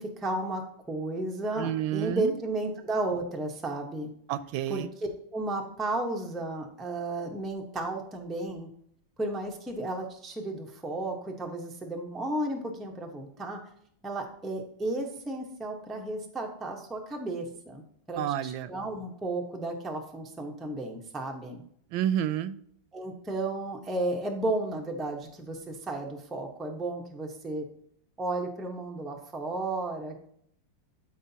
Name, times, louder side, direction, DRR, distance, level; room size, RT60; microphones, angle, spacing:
voice 1, 0.0-4.1 4.7-8.7 9.2-13.6 14.0-21.6 22.9-27.7 28.2-30.2, right 2 dB, ahead, 1 dB, 0.6 m, -33 dB
voice 2, 1.6-2.3 4.3-4.9 18.2-18.7 21.9-22.6, right 11 dB, 90° right, 14 dB, 1.4 m, -29 dB
12.5 x 5.0 x 2.8 m, 0.66 s
omnidirectional pair, 2.1 m